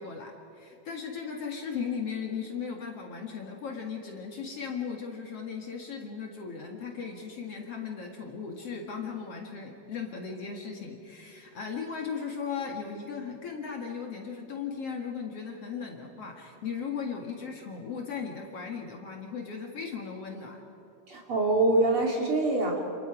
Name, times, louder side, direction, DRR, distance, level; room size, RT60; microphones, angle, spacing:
voice 1, 0.0-20.6, left 6 dB, 50° left, 1 dB, 2.6 m, -37 dB
voice 2, 21.1-22.8, right 2 dB, 40° right, -1 dB, 3.3 m, -24 dB
29.0 x 28.5 x 5.0 m, 2.7 s
omnidirectional pair, 3.8 m